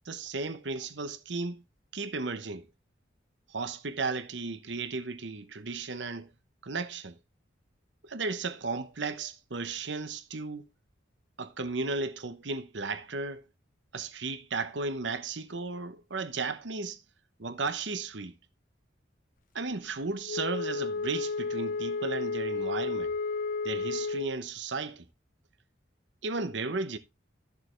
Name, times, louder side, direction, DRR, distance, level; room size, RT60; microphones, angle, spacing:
voice 1, 0.1-1.6 1.9-2.7 3.5-6.3 6.6-7.2 8.0-10.7 11.4-13.4 13.9-17.0 17.4-18.3 19.5-23.1 23.6-25.0 26.2-27.0, right 3 dB, 70° right, 1.1 m, -35 dB
Wind instrument woodwind instrument, 20.2-24.4, left 4 dB, 45° left, 0.4 m, -32 dB
13.5 x 6.9 x 3.2 m
head